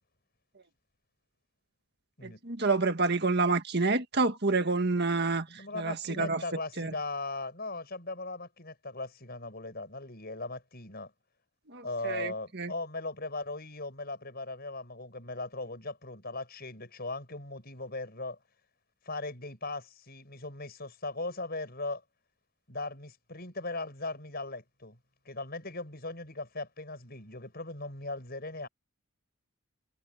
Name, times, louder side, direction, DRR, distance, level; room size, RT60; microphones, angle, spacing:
voice 1, 2.2-6.4 6.8-6.9 11.7-12.7, right 3 dB, 50° right, 1.8 m, -28 dB
voice 2, 5.5-11.1 11.8-18.4 19.1-22.0 22.7-25.0 25.3-28.7, left 2 dB, 45° left, 7.0 m, -38 dB
head